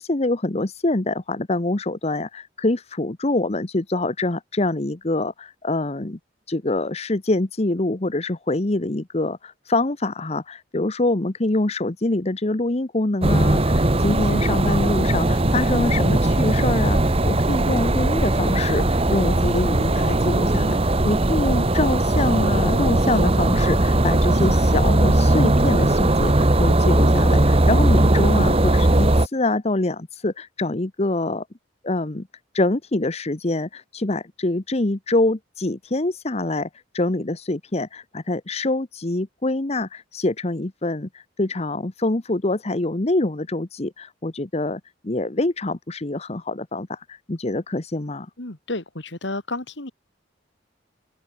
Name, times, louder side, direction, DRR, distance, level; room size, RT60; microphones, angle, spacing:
voice 1, 0.0-6.2 6.5-31.4 31.8-32.3 32.5-36.7 36.9-48.3, left 2 dB, 35° left, 1.0 m, -25 dB
sound 1, 13.2-29.3, right 1 dB, 30° right, 1.4 m, -19 dB
voice 2, 48.4-49.9, left 2 dB, 75° left, 3.1 m, -31 dB
head